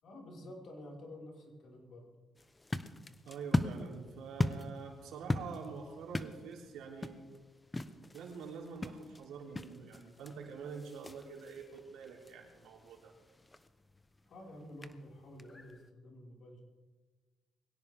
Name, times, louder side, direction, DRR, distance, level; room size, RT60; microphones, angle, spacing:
voice 1, 0.0-2.1 14.3-16.6, left 1 dB, 65° left, -2 dB, 5.2 m, -50 dB
sound 1, 2.4-15.9, left 2 dB, 20° left, 0.9 m, -40 dB
voice 2, 3.2-7.2 8.1-13.1, right 5 dB, 90° right, 0 dB, 3.4 m, -46 dB
22.0 x 17.0 x 3.6 m, 1.3 s
cardioid pair, 90°, 0 cm